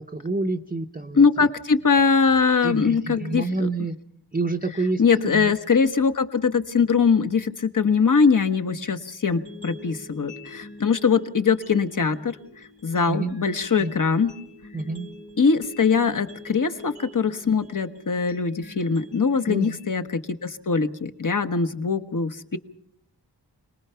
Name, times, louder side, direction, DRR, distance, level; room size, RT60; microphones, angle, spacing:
voice 1, 0.0-1.2 2.6-4.0 4.3-5.5 13.1-13.4 13.8-14.0 14.7-15.1 19.5-19.8, right 3 dB, 20° right, 3 dB, 0.8 m, -28 dB
voice 2, 1.1-3.7 5.0-12.4 12.8-14.3 15.4-22.6, left 5 dB, 45° left, 10 dB, 1.2 m, -22 dB
sound 1, 9.3-21.3, left 3 dB, 90° left, 4.0 m, -45 dB
26.0 x 19.5 x 5.7 m, 0.67 s
wide cardioid pair, 80°, 43 cm